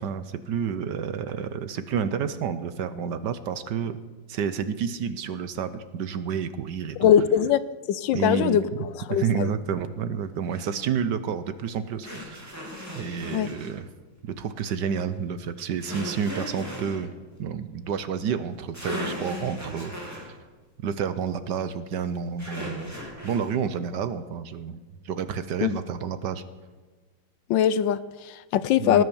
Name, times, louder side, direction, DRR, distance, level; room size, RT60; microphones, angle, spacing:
voice 1, 0.0-4.0 4.3-7.1 8.1-8.6 9.1-12.5 12.9-13.9 14.2-17.1 17.4-20.3 20.8-22.9 23.2-26.4 28.8-29.0, right 7 dB, 65° right, 12 dB, 1.3 m, -30 dB
voice 2, 7.0-7.6 7.9-9.5 13.3-13.5 25.6-25.7 27.5-29.0, left 9 dB, 75° left, 16 dB, 1.3 m, -22 dB
sound 1, 10.5-10.7 12.0-13.7 15.8-17.0 18.4-18.5 18.7-20.3 22.4-23.5, equal, 10° right, 3.4 m, -36 dB
18.5 x 9.9 x 7.0 m, 1.3 s
omnidirectional pair, 2.1 m